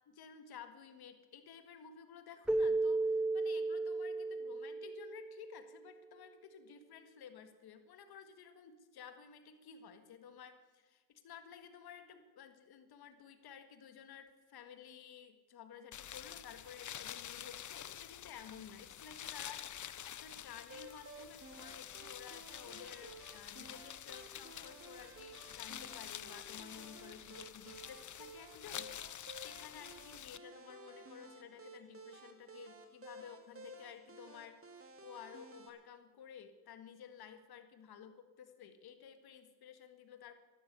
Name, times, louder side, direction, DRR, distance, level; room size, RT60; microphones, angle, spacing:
voice 1, 0.0-40.3, left 7 dB, 80° left, 9 dB, 1.8 m, -54 dB
Keyboard (musical), 2.5-5.7, right 2 dB, 5° right, 0.5 m, -34 dB
sound 1, 15.9-30.4, left 10 dB, 50° left, 0.7 m, -48 dB
sound 2, 20.7-35.7, right 2 dB, 35° right, 2.4 m, -55 dB
12.5 x 12.0 x 8.1 m, 1.2 s
cardioid pair, 65°, 37 cm